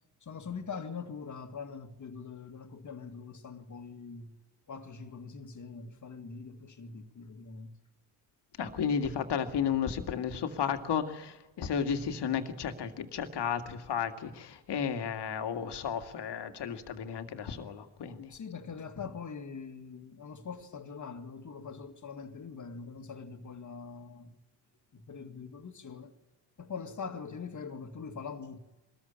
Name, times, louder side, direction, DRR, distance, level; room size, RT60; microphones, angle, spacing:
voice 1, 0.2-4.3 4.7-7.8 18.3-24.3 24.9-26.1 26.6-28.6, left 5 dB, 35° left, 2.2 m, -43 dB
voice 2, 8.6-18.3, left 7 dB, 55° left, 2.1 m, -33 dB
22.0 x 14.0 x 8.8 m
supercardioid pair, 70°, 48 cm